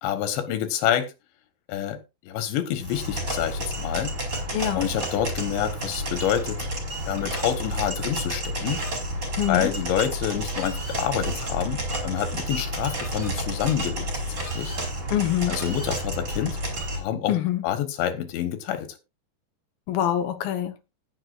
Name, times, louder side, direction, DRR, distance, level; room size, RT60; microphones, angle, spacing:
voice 1, 0.0-1.1 1.7-4.2 4.8-6.6 7.1-8.8 9.5-14.1 14.4-14.8 15.5-16.6 17.0-17.4 17.6-19.0, left 10 dB, 85° left, 3.8 m, -27 dB
sound 1, 2.8-17.0, right 1 dB, 25° right, 4.6 m, -30 dB
voice 2, 4.5-4.8 9.4-9.7 15.1-15.6 17.3-17.6 19.9-20.7, left 12 dB, 65° left, 2.7 m, -25 dB
18.5 x 7.5 x 2.5 m
omnidirectional pair, 5.0 m